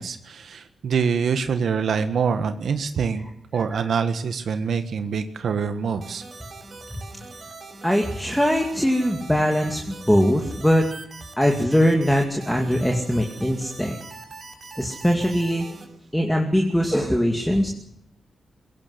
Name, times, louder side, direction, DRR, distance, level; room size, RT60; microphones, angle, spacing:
voice 1, 0.0-3.3 3.5-6.2, right 6 dB, 65° right, 9 dB, 1.6 m, -25 dB
sound 1, 6.0-15.9, right 3 dB, 40° right, 6.5 m, -42 dB
voice 2, 7.8-10.9 11.4-14.0 14.8-15.7 16.1-17.7, equal, 5° left, 2 dB, 2.4 m, -21 dB
23.0 x 18.0 x 8.1 m, 0.73 s
wide cardioid pair, 135°, 0 cm